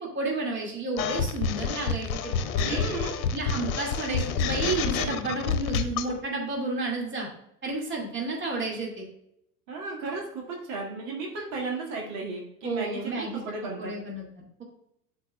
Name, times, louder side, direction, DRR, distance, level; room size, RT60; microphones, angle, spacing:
voice 1, 0.1-2.8 3.3-7.3 7.6-9.1 12.6-13.4 13.8-14.6, right 3 dB, 25° right, -1 dB, 2.3 m, -31 dB
sound 1, 1.0-6.1, left 6 dB, 60° left, 0.9 m, -28 dB
voice 2, 2.7-3.1 9.7-13.9, right 3 dB, 55° right, -2 dB, 2.2 m, -34 dB
11.5 x 4.7 x 2.3 m, 0.77 s
figure-of-eight pair, 85°, 47 cm